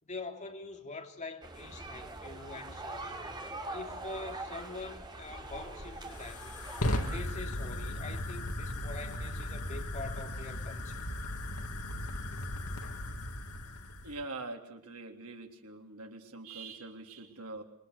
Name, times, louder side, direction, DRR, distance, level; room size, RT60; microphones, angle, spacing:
voice 1, 0.0-3.2 3.7-6.5 7.0-11.0, left 3 dB, 35° left, 3 dB, 3.3 m, -44 dB
sound 1, 1.4-7.2, right 2 dB, 20° right, 3.8 m, -43 dB
Fire, 5.2-14.2, left 1 dB, 80° left, 2.5 m, -37 dB
voice 2, 14.0-17.6, right 3 dB, 75° right, 3 dB, 3.5 m, -43 dB
27.0 x 23.0 x 8.2 m, 0.68 s
head